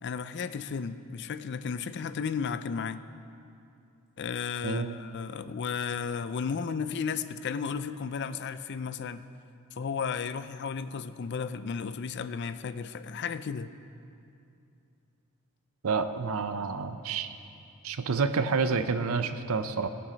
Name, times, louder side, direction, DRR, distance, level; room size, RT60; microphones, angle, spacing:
voice 1, 0.0-3.0 4.2-9.2 9.8-13.7, left 6 dB, 50° left, 12 dB, 0.4 m, -34 dB
voice 2, 4.6-5.0 15.8-17.3 17.8-19.9, right 4 dB, 70° right, 10 dB, 0.6 m, -29 dB
20.5 x 7.0 x 5.2 m, 2.6 s
head